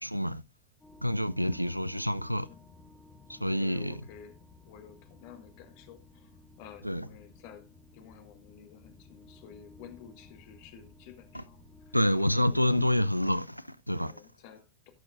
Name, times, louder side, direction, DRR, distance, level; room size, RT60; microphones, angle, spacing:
voice 1, 0.0-0.4 1.0-2.5 3.3-3.9 6.8-7.0 11.9-14.1, left 1 dB, 90° right, 0.4 m, -28 dB
sound 1, 0.8-13.0, left 3 dB, 15° left, 2.7 m, -55 dB
voice 2, 3.4-12.8 14.0-14.9, left 8 dB, 45° left, 2.1 m, -52 dB
17.5 x 6.3 x 2.5 m
figure-of-eight pair, 90°, 0 cm